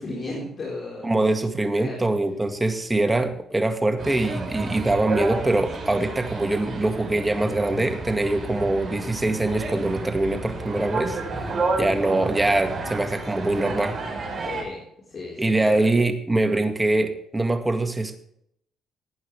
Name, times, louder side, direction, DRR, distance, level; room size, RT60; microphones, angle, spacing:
voice 1, 0.0-1.2 1.8-2.0 10.5-10.9 14.4-14.8 15.1-15.8, left 2 dB, 45° left, -4 dB, 4.5 m, -35 dB
voice 2, 1.0-11.5 11.8-14.0 15.4-18.2, right 2 dB, 15° right, 6 dB, 2.0 m, -23 dB
sound 1, 4.0-14.6, right 3 dB, 35° right, 6.4 m, -31 dB
19.0 x 9.2 x 3.4 m, 0.72 s
cardioid pair, 90°, 0 cm